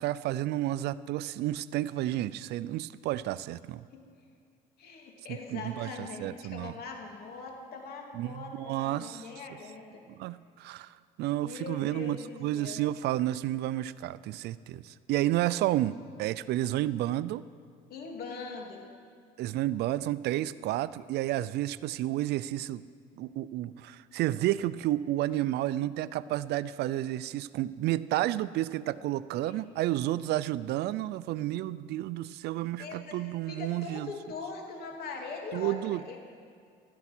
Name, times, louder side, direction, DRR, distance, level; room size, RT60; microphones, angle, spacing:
voice 1, 0.0-3.8 5.5-6.7 8.1-9.3 10.1-17.4 19.4-22.8 23.2-34.1 35.5-36.2, right 14 dB, 75° right, 17 dB, 0.5 m, -31 dB
voice 2, 4.8-10.0 11.4-12.8 17.9-18.8 29.4-29.5 32.8-36.2, left 4 dB, 65° left, 1 dB, 3.0 m, -41 dB
15.5 x 12.5 x 6.1 m, 2.3 s
cardioid pair, 110°, 17 cm